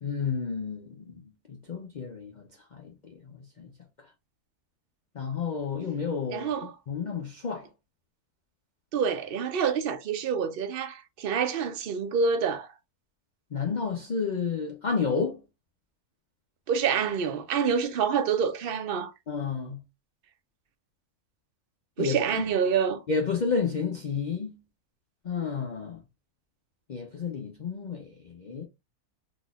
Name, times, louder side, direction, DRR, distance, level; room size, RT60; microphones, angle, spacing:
voice 1, 0.0-3.7 5.1-7.7 13.5-15.4 19.3-19.8 22.0-22.4 23.1-24.6 25.2-26.0 26.9-28.6, left 5 dB, 85° left, 0.4 m, -31 dB
voice 2, 6.3-6.7 8.9-12.7 16.7-19.1 22.0-23.0, right 6 dB, 65° right, 0.5 m, -27 dB
4.1 x 2.7 x 2.3 m
omnidirectional pair, 1.6 m